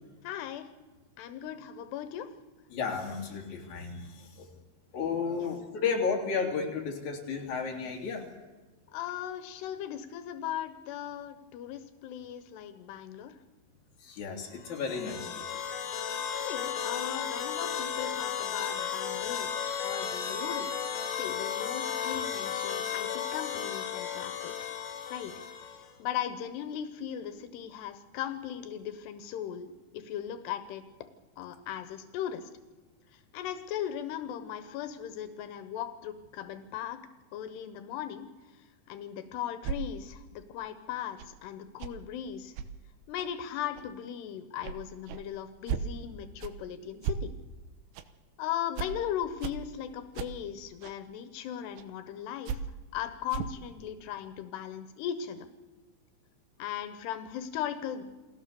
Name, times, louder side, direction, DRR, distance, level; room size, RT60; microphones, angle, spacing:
voice 1, 0.2-0.7 1.2-2.3 5.4-5.6 8.9-13.4 16.5-19.6 19.8-20.7 21.2-24.7 25.1-25.3 25.6-30.8 31.4-32.5 33.1-37.0 37.3-42.5 43.1-47.3 48.4-52.6 52.9-55.5 56.6-58.0, left 10 dB, 90° left, 9 dB, 3.2 m, -38 dB
voice 2, 2.7-4.5 4.9-8.3 14.0-15.4 22.1-22.2, left 5 dB, 50° left, 1 dB, 4.2 m, -33 dB
sound 1, 14.6-25.9, left 8 dB, 65° left, 4.3 m, -34 dB
sound 2, 39.6-39.8 41.2-41.3 41.8-41.9 42.5-42.7 43.2-43.3 43.8-43.9 44.6-44.8 45.1-45.2 45.7-45.8 46.4-46.5 47.0-47.2 47.9-48.0 48.7-48.9 49.4-49.5 50.1-50.3 50.8-50.9 51.8-51.9 52.5-52.6 53.3-53.6, right 7 dB, 90° right, 3.2 m, -34 dB
29.0 x 19.5 x 6.9 m, 1.3 s
omnidirectional pair, 4.7 m